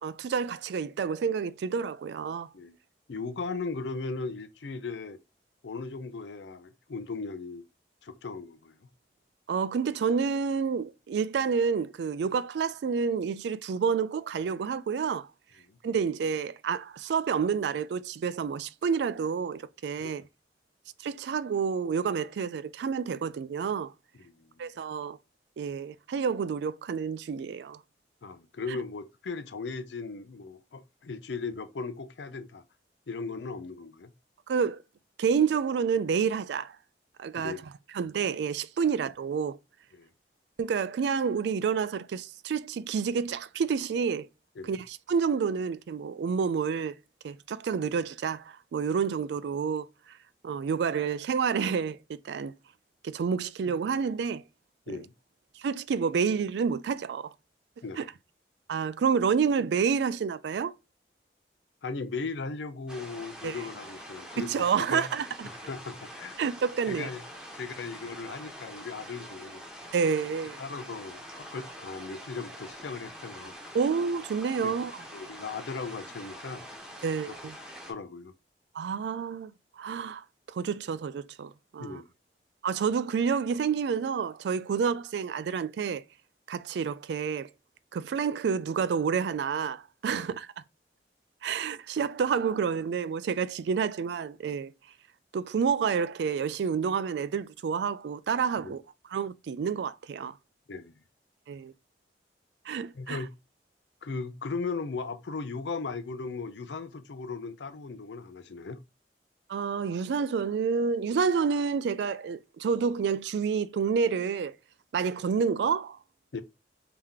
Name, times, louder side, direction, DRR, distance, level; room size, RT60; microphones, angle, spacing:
voice 1, 0.0-2.5 9.5-15.3 15.8-20.2 21.0-23.9 24.6-25.2 25.6-27.8 34.5-34.8 35.2-36.8 37.2-37.5 37.9-39.6 40.6-44.3 44.7-46.9 47.2-49.9 50.4-52.5 53.0-54.4 55.6-57.3 58.0-58.1 58.7-60.7 63.4-63.6 64.4-65.5 66.4-67.1 69.9-70.6 73.7-75.0 77.0-77.6 78.7-79.5 79.8-82.0 82.6-86.0 86.5-87.5 87.9-90.5 91.4-94.7 95.3-98.8 99.1-100.3 101.5-101.7 102.7-103.2 109.5-114.5 114.9-116.0, right 6 dB, 75° right, 0.3 m, -29 dB
voice 2, 3.1-5.2 5.6-7.6 8.0-8.8 15.7-15.8 20.0-20.2 24.2-24.5 28.2-32.6 33.1-34.1 37.4-37.6 39.9-40.1 44.6-44.8 54.9-55.1 57.8-58.0 61.8-65.1 65.4-66.4 66.9-67.2 67.5-69.6 70.6-73.5 74.6-74.7 75.1-76.7 77.2-77.3 77.9-78.3 81.8-82.1 90.1-90.2 98.6-98.7 100.7-101.0 102.9-103.3 104.0-108.8 116.3-116.4, left 4 dB, 85° left, 0.5 m, -37 dB
sound 1, 62.9-77.9, equal, 5° right, 0.9 m, -45 dB
3.5 x 2.8 x 3.6 m
head